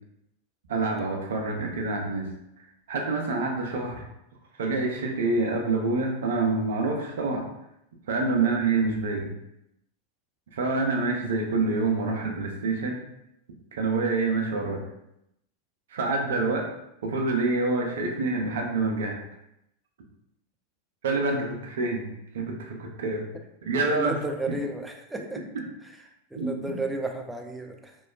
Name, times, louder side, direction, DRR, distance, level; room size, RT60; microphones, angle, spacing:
voice 1, 0.7-2.3 2.9-4.0 4.6-7.5 8.1-9.3 10.5-13.0 13.7-14.8 15.9-16.7 17.0-19.2 21.0-23.3 23.6-24.1 25.1-25.6 26.3-26.7, right 3 dB, 60° right, 1 dB, 0.5 m, -27 dB
voice 2, 23.9-25.4 25.8-26.0 26.3-28.0, right 1 dB, 5° right, 2 dB, 0.3 m, -33 dB
3.0 x 2.1 x 2.3 m, 0.82 s
figure-of-eight pair, 90°, 0 cm